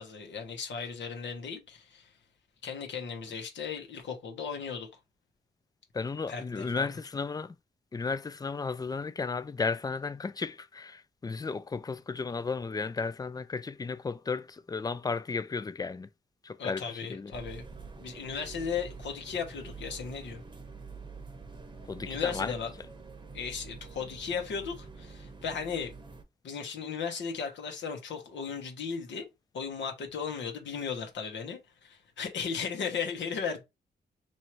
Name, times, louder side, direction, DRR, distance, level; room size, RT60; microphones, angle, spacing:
voice 1, 0.0-2.1 2.6-4.9 6.3-6.9 16.6-17.6 18.0-20.4 22.0-22.7 23.3-25.9 26.4-29.3 29.5-33.6, left 6 dB, 85° left, 1.2 m, -36 dB
voice 2, 5.9-7.5 7.9-16.1 16.4-17.3 21.9-22.5, left 4 dB, 20° left, 0.3 m, -34 dB
sound 1, 17.3-26.2, right 4 dB, 25° right, 0.8 m, -46 dB
3.1 x 2.7 x 4.4 m
cardioid pair, 100°, 18 cm